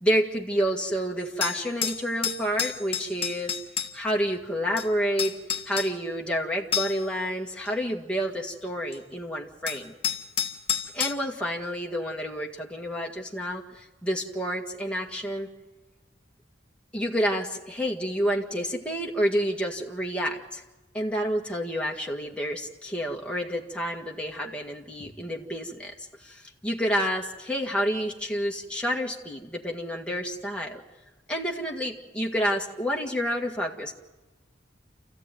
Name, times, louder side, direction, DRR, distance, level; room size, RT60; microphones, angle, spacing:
voice 1, 0.0-3.6 3.9-5.3 5.7-9.9 10.9-15.5 16.9-20.6 20.9-25.9 26.2-30.8 31.3-33.9, equal, 5° left, -1 dB, 1.9 m, -29 dB
sound 1, 1.2-3.9 4.8-4.9 5.2-5.9 6.7-7.1 7.7-7.8 8.9-9.0 9.7-11.1, left 8 dB, 30° left, 1.6 m, -29 dB
27.5 x 15.0 x 9.2 m, 1.1 s
head